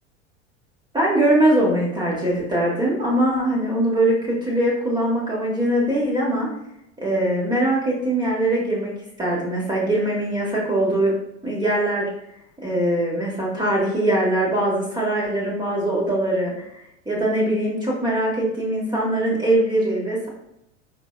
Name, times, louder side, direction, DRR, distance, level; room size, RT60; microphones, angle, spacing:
voice 1, 0.9-6.5 7.0-8.9 9.2-11.1 11.4-12.1 12.6-16.6 17.0-20.3, right 1 dB, 10° right, -4 dB, 1.4 m, -22 dB
4.6 x 3.8 x 2.4 m, 0.82 s
hypercardioid pair, 95°, 35 cm